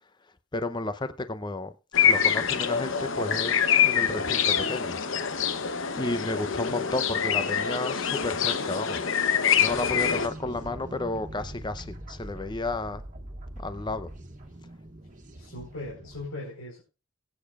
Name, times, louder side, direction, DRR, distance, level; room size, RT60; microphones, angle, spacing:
voice 1, 0.5-1.7 2.0-5.0 5.9-9.0 9.6-13.0 13.6-14.1, left 2 dB, 20° left, 0.7 m, -32 dB
sound 1, 1.9-10.3, left 7 dB, 60° left, 0.8 m, -25 dB
sound 2, 9.7-16.3, right 1 dB, 40° right, 1.7 m, -42 dB
voice 2, 15.4-16.8, left 2 dB, 75° left, 4.3 m, -39 dB
21.5 x 8.7 x 2.4 m
head